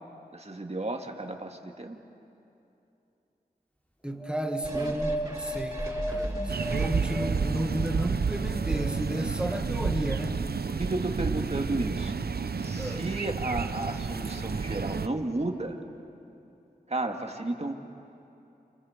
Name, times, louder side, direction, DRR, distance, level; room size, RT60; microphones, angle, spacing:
voice 1, 0.3-2.0 10.8-15.8 16.9-17.7, right 2 dB, 40° right, 3 dB, 2.2 m, -33 dB
voice 2, 4.0-10.4 12.8-13.1, equal, 5° right, 4 dB, 1.8 m, -33 dB
Wind, 4.2-7.7 8.3-9.3 10.1-10.2, right 1 dB, 10° left, 3.1 m, -35 dB
sound 1, 4.6-7.3 7.8-7.9, right 1 dB, 25° right, 7.1 m, -37 dB
sound 2, 6.5-15.1, right 5 dB, 75° right, 0.7 m, -30 dB
29.5 x 27.5 x 5.2 m, 2.8 s
wide cardioid pair, 45°, 16 cm